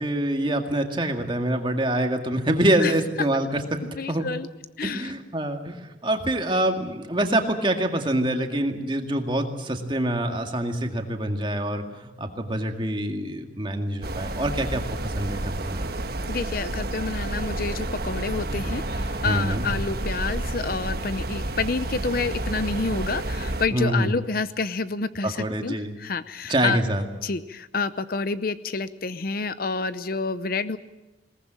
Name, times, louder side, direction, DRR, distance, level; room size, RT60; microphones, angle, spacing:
voice 1, 0.0-3.8 4.1-4.2 4.8-15.9 19.2-19.7 23.7-24.1 25.2-25.9 26.5-27.0, right 1 dB, 25° right, 4 dB, 2.0 m, -25 dB
voice 2, 3.8-4.5 4.8-5.1 16.3-26.8 27.2-30.8, left 4 dB, 50° left, 14 dB, 0.7 m, -28 dB
sound 1, 14.0-23.7, right 1 dB, 55° right, 1.3 m, -30 dB
21.5 x 19.0 x 8.9 m, 1.1 s
head